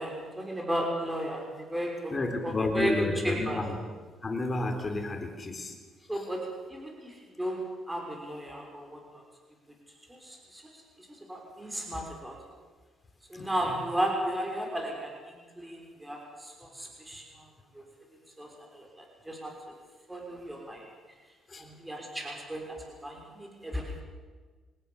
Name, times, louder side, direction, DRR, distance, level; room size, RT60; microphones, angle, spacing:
voice 1, 0.0-2.1 2.4-2.9 3.2-3.6 6.1-6.4 6.7-9.2 10.1-12.4 13.3-17.5 17.7-17.8 18.4-19.5 20.1-20.8 21.6-23.9, right 1 dB, 10° right, 0 dB, 6.1 m, -35 dB
voice 2, 2.1-3.8 4.2-5.8 6.1-6.3 13.3-13.8 21.5-21.7, left 2 dB, 30° left, 5 dB, 3.8 m, -31 dB
24.5 x 19.0 x 7.3 m, 1.4 s
cardioid pair, 100°, 0 cm